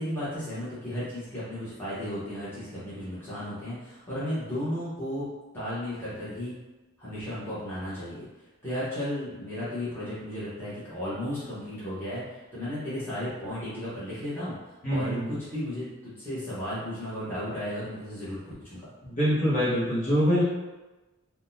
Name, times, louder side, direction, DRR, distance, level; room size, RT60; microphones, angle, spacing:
voice 1, 0.0-5.3 5.5-6.5 7.0-8.2 8.6-14.5 14.9-18.9, left 1 dB, 10° left, -12 dB, 1.0 m, -34 dB
voice 2, 14.8-15.3 19.0-20.4, equal, 35° left, -10 dB, 1.1 m, -24 dB
3.7 x 2.3 x 2.6 m, 1.1 s
head